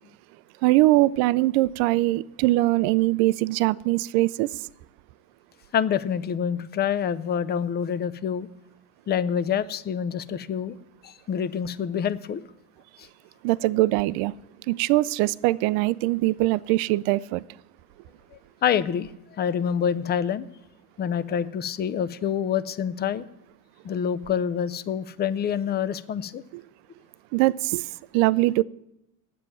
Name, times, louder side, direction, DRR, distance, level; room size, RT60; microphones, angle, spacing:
voice 1, 0.6-4.5 13.4-14.3 14.7-17.4 26.5-26.6 27.3-27.9 28.1-28.6, right 18 dB, 55° right, 0.5 m, -22 dB
voice 2, 5.7-8.5 9.1-10.8 11.0-12.4 13.0-13.1 18.6-20.5 21.0-23.2 23.8-26.4, left 8 dB, 25° left, 0.5 m, -27 dB
9.0 x 7.7 x 9.0 m
hypercardioid pair, 90°, 45 cm